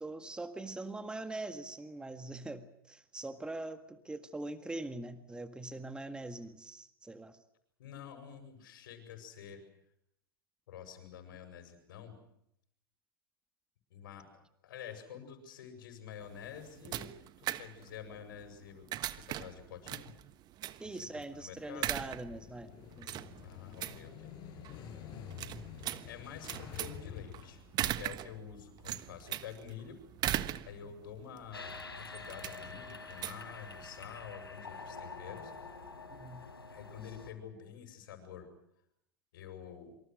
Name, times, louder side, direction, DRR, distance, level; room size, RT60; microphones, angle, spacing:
voice 1, 0.0-7.4 20.8-22.7 23.0-23.3 36.1-36.4, right 2 dB, 5° right, 9 dB, 1.8 m, -42 dB
voice 2, 7.8-9.6 10.7-12.2 13.9-14.3 14.6-17.1 17.4-20.1 20.8-22.0 23.4-24.3 26.1-30.0 30.6-35.5 36.7-38.5 39.3-39.9, left 8 dB, 65° left, 7 dB, 7.7 m, -48 dB
sound 1, 16.2-34.2, right 13 dB, 35° right, 1.3 m, -41 dB
Motorcycle / Engine starting, 22.1-27.9, left 9 dB, 40° left, 7.0 m, -48 dB
sound 2, 31.5-37.3, left 4 dB, 90° left, 5.0 m, -47 dB
27.0 x 26.0 x 6.4 m, 0.76 s
figure-of-eight pair, 95°, 12 cm